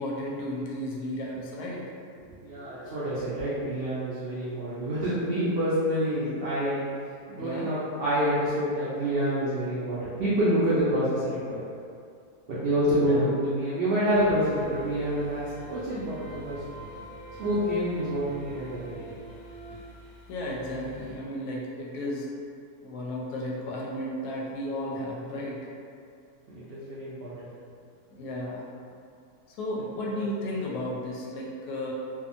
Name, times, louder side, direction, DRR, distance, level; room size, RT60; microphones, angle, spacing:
voice 1, 0.0-1.8 7.4-7.7 13.0-13.3 20.3-22.3 22.8-25.7 28.1-28.7 29.5-31.9, left 1 dB, 85° left, -4 dB, 1.1 m, -33 dB
voice 2, 2.3-6.8 7.3-11.6 12.5-16.6 17.4-19.1 26.5-27.5 29.8-30.2, equal, 85° right, -9 dB, 0.5 m, -27 dB
sound 1, 14.1-21.2, right 1 dB, 65° left, 0.4 m, -44 dB
2.7 x 2.4 x 2.5 m, 2.3 s
omnidirectional pair, 1.6 m